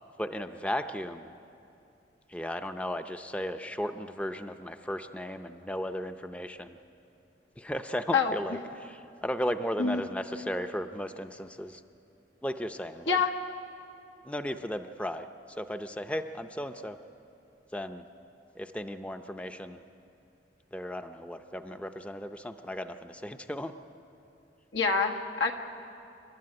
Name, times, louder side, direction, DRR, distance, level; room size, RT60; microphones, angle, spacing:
voice 1, 0.2-1.3 2.3-6.8 7.6-11.8 12.4-13.2 14.2-15.3 15.6-17.0 17.7-18.0 18.6-19.8 20.7-23.7, equal, 5° left, 8 dB, 0.5 m, -35 dB
voice 2, 24.7-25.5, left 5 dB, 90° left, 1 dB, 1.7 m, -26 dB
27.5 x 12.5 x 9.7 m, 2.7 s
head